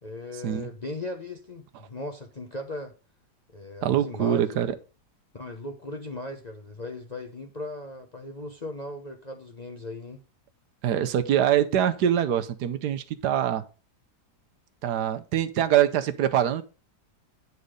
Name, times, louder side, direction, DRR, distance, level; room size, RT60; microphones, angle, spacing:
voice 1, 0.0-2.9 3.5-4.6 5.3-10.2, left 2 dB, 35° left, 0.7 m, -38 dB
voice 2, 3.8-4.7 10.8-13.6 14.8-16.6, right 10 dB, 75° right, 1.3 m, -24 dB
9.3 x 4.1 x 4.8 m
omnidirectional pair, 1.8 m